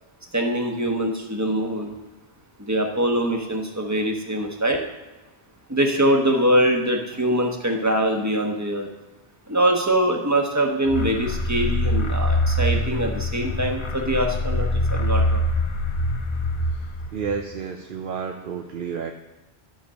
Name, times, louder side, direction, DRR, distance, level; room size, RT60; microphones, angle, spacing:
voice 1, 0.3-1.9 2.7-4.8 5.7-8.9 9.5-15.4, right 1 dB, 15° right, 2 dB, 1.2 m, -23 dB
sound 1, 10.9-17.4, left 1 dB, 40° left, 0.5 m, -24 dB
voice 2, 17.1-19.1, right 6 dB, 60° right, 4 dB, 0.8 m, -30 dB
11.5 x 5.1 x 6.3 m, 1.1 s
omnidirectional pair, 1.1 m